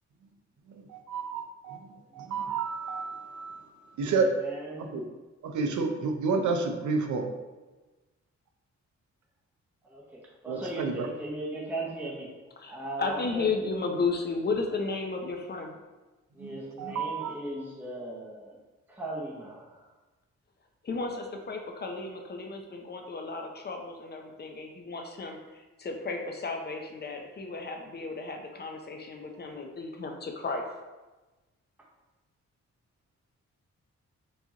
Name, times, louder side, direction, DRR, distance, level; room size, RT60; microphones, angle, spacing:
voice 1, 0.7-4.3 4.8-5.0 5.4-7.3 10.5-11.1 16.4-16.5 16.8-17.3, right 4 dB, 80° right, 5 dB, 0.6 m, -30 dB
voice 2, 4.4-4.9 9.8-12.3 12.7-13.4 16.3-18.6 18.9-19.9, right 1 dB, 5° right, -5 dB, 0.8 m, -38 dB
voice 3, 12.6-15.8 20.8-30.6, left 3 dB, 35° left, 3 dB, 0.5 m, -34 dB
4.6 x 2.9 x 2.8 m, 1.2 s
cardioid pair, 105°, 29 cm